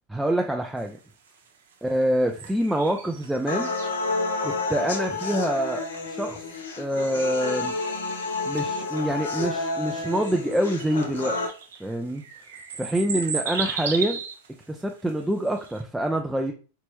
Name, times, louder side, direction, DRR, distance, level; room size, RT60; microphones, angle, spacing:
voice 1, 0.1-1.0 1.8-3.7 4.4-6.4 6.8-7.7 8.5-11.4 11.8-12.2 12.8-14.2 14.7-16.5, right 1 dB, 5° right, 2 dB, 0.3 m, -26 dB
sound 1, 0.8-15.8, right 6 dB, 85° right, 0.8 m, -37 dB
sound 2, 3.5-11.5, left 3 dB, 85° left, 0.7 m, -30 dB
4.5 x 2.0 x 3.0 m, 0.36 s
supercardioid pair, 135°, 0 cm